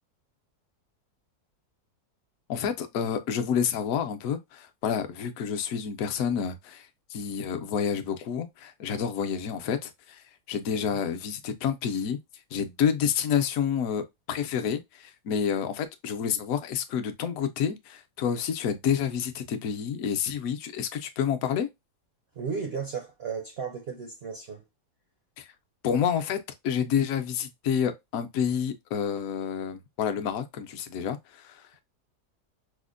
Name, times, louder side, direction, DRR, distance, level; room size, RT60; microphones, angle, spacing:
voice 1, 2.5-12.2 12.5-21.7 25.4-25.5 25.8-31.8, left 7 dB, 70° left, 1.0 m, -29 dB
voice 2, 22.4-24.6, right 5 dB, 65° right, 0.6 m, -35 dB
4.9 x 2.1 x 2.4 m
omnidirectional pair, 1.7 m